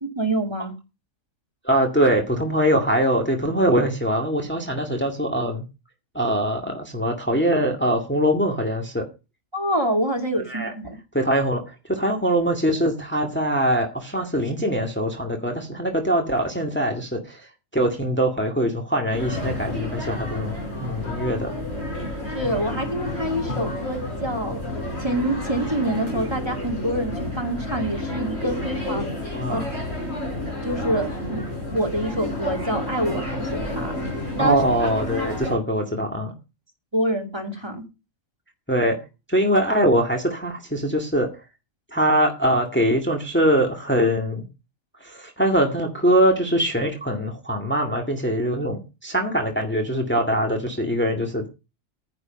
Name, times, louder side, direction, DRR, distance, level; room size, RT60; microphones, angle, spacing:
voice 1, 0.0-0.7 9.5-11.0 22.3-24.6 25.0-29.1 29.5-29.6 30.6-31.4 31.7-33.9 34.4-34.6 36.9-37.8, right 1 dB, 20° right, 3 dB, 2.6 m, -26 dB
voice 2, 1.6-5.6 6.1-9.1 10.5-10.7 11.1-17.5 17.7-20.5 20.8-21.5 29.3-29.7 34.4-36.3 38.7-39.0 39.3-41.3 41.9-44.5 45.0-51.5, equal, 10° left, 2 dB, 2.0 m, -22 dB
sound 1, 19.1-35.5, left 1 dB, 50° left, 7.5 m, -30 dB
10.5 x 9.8 x 5.3 m, 0.28 s
omnidirectional pair, 1.4 m